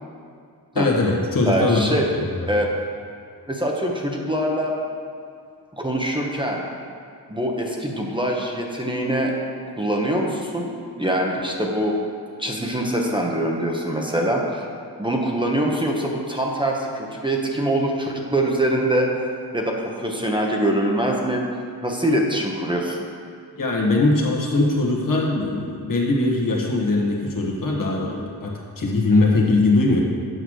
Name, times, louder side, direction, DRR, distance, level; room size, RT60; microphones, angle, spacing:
voice 1, 0.7-2.3 23.6-30.0, left 2 dB, 60° left, -1 dB, 1.6 m, -21 dB
voice 2, 1.5-2.1 2.5-2.7 3.5-4.7 5.8-6.6 7.3-9.3 9.8-12.0 12.4-14.6 15.0-19.1 19.5-21.4 21.8-23.0, right 1 dB, 15° right, -1 dB, 1.1 m, -23 dB
8.0 x 6.0 x 6.4 m, 2.3 s
wide cardioid pair, 100°, 38 cm